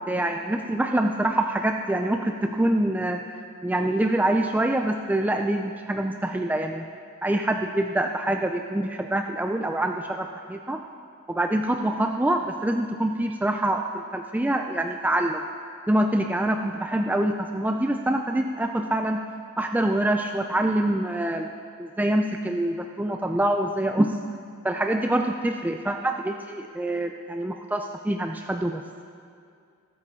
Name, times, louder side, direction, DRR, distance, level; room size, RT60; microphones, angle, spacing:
voice 1, 0.0-3.2 3.6-6.9 7.2-10.8 11.3-15.4 15.9-19.2 19.6-21.5 21.8-24.2 24.6-28.8, right 1 dB, 5° right, 4 dB, 0.3 m, -25 dB
19.5 x 8.4 x 3.7 m, 2.4 s
head